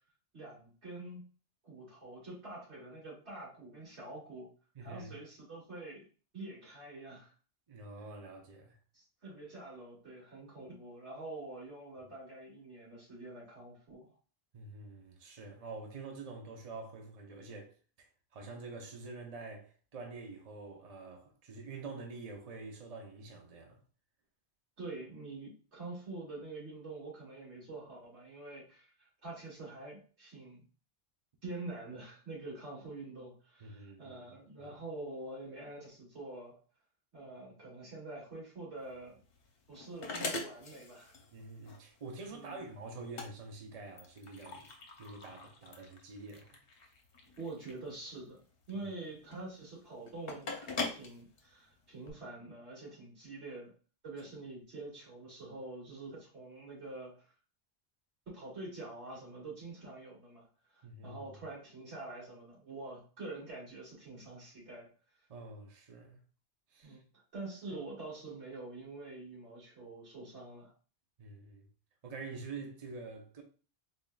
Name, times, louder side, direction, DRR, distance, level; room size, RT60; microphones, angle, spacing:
voice 1, 0.3-1.2 1.6-4.5 4.8-6.1 6.3-7.3 8.9-14.1 24.8-28.9 29.2-30.7 31.4-36.6 37.1-39.2 39.7-41.2 42.3-42.6 47.4-48.4 48.7-53.7 54.0-57.1 58.3-60.5 60.7-64.9 66.8-67.0 67.3-70.7, right 2 dB, 80° right, 2.4 m, -46 dB
voice 2, 4.7-5.1 7.7-8.8 14.5-23.8 33.6-34.2 34.6-34.7 41.3-44.7 45.0-46.6 48.7-48.9 54.4-54.5 60.8-61.2 65.3-66.2 66.7-67.0 71.2-71.7 72.0-73.4, right 3 dB, 40° right, 0.7 m, -47 dB
sound 1, 38.8-52.1, left 3 dB, 60° left, 0.9 m, -44 dB
3.9 x 3.6 x 2.3 m
omnidirectional pair, 1.1 m